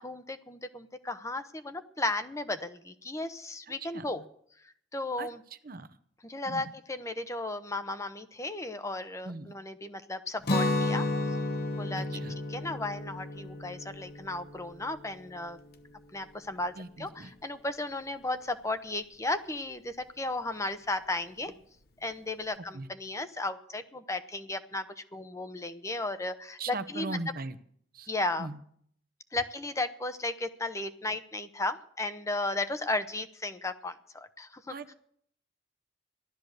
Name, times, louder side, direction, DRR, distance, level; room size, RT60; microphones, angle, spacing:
voice 1, 0.0-4.2 4.9-5.4 6.2-11.1 11.7-12.2 12.5-15.6 16.1-21.5 22.0-24.9 25.1-27.2 28.1-28.5 29.3-34.7, left 2 dB, 15° left, 10 dB, 0.8 m, -35 dB
voice 2, 3.7-4.2 5.2-5.3 5.6-5.9 6.5-6.7 9.2-9.5 12.0-12.4 16.8-17.3 22.6-22.9 26.6-27.6 27.9-28.1 28.4-28.6 34.7-34.9, right 3 dB, 50° right, 11 dB, 0.9 m, -39 dB
Guitar, 10.4-16.3, left 2 dB, 55° left, 1.1 m, -33 dB
15.0 x 12.0 x 6.5 m, 0.65 s
head